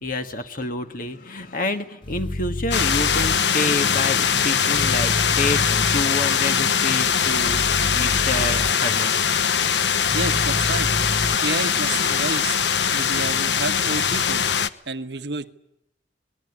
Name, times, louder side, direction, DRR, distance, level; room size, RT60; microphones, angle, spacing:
voice 1, 0.0-5.6 5.9-7.6 7.9-9.2, left 2 dB, 55° left, 7 dB, 1.7 m, -28 dB
sound 1, 2.0-3.4 4.7-6.0 7.4-8.7 10.0-11.3, left 1 dB, 30° left, 1.2 m, -29 dB
sound 2, 2.7-14.7, left 7 dB, 85° left, 1.1 m, -21 dB
voice 2, 10.1-11.0 11.4-12.6 12.9-14.4 14.9-15.5, right 3 dB, 75° right, 10 dB, 1.3 m, -30 dB
26.0 x 21.0 x 9.7 m, 0.83 s
head